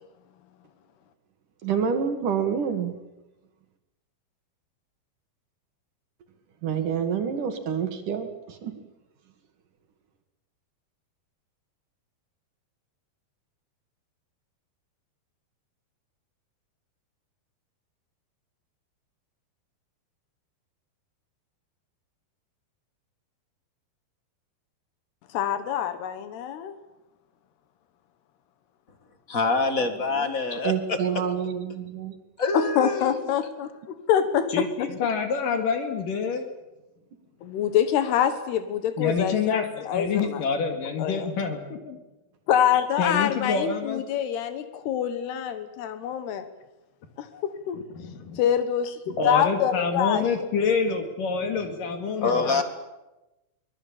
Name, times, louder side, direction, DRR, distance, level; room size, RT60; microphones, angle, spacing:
voice 1, 1.6-2.9 6.6-8.7 30.6-32.1, right 7 dB, 60° right, 7 dB, 3.3 m, -27 dB
voice 2, 25.3-26.7 29.8-30.4 32.5-34.5 34.9-35.0 37.4-40.4 41.0-41.3 42.5-46.5 47.2-47.8 48.4-50.2 52.2-52.6, left 9 dB, 85° left, 10 dB, 3.5 m, -26 dB
voice 3, 29.3-31.0 32.4-33.2 52.2-52.6, left 3 dB, 35° left, 8 dB, 1.5 m, -25 dB
voice 4, 34.5-36.5 39.0-42.0 43.0-44.0 47.7-48.4 49.1-52.6, left 5 dB, 60° left, 5 dB, 3.5 m, -27 dB
24.0 x 21.0 x 8.8 m, 0.99 s
omnidirectional pair, 4.5 m